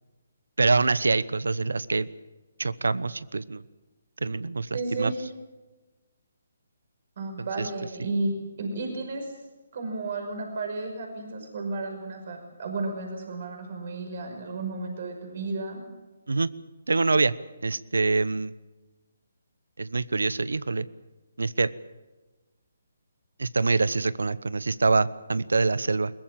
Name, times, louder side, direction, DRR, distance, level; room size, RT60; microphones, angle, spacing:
voice 1, 0.6-2.1 2.6-3.6 4.2-5.1 7.6-7.7 16.3-16.5 16.9-17.3 17.6-18.5 19.8-20.9 21.4-21.7 23.4-26.1, right 3 dB, 75° right, 18 dB, 0.9 m, -25 dB
voice 2, 4.7-5.2 7.2-9.3 9.7-15.8, right 3 dB, 50° right, 4 dB, 5.6 m, -33 dB
22.0 x 20.5 x 7.5 m, 1.2 s
figure-of-eight pair, 140°, 0 cm